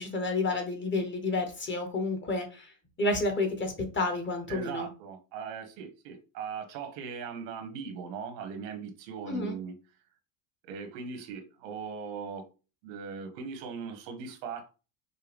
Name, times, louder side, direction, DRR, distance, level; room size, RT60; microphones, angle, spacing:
voice 1, 0.0-2.7 3.0-4.9 9.2-9.6, left 2 dB, 25° left, 1.1 m, -30 dB
voice 2, 4.5-9.7 10.6-12.4 12.8-14.7, right 6 dB, 90° right, 1.3 m, -39 dB
5.5 x 2.2 x 3.5 m
cardioid pair, 130°, 47 cm